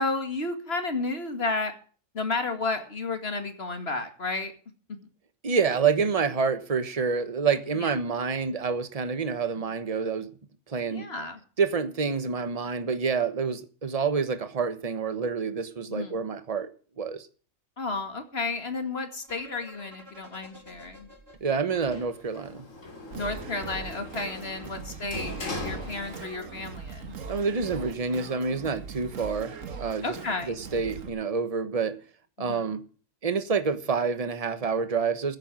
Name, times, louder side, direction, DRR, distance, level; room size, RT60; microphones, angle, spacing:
voice 1, 0.0-1.7 2.1-4.5 7.7-7.9 9.6-9.7 10.9-11.4 15.9-16.1 17.8-21.1 23.2-27.1 30.0-30.6 32.4-32.6, left 3 dB, 50° left, 2.3 m, -32 dB
voice 2, 5.4-10.3 10.7-11.1 11.6-16.7 17.0-17.3 21.4-22.6 27.3-29.5 29.8-30.2 30.5-32.0 32.4-32.8 33.2-35.4, right 5 dB, 30° right, 1.2 m, -27 dB
sound 1, 19.2-23.1, left 1 dB, 45° right, 5.3 m, -51 dB
Sliding door, 21.8-26.7 27.0-27.9, left 2 dB, 70° left, 3.1 m, -40 dB
Singing, 23.1-31.1, right 5 dB, 75° right, 1.8 m, -40 dB
15.5 x 8.8 x 6.2 m
omnidirectional pair, 1.4 m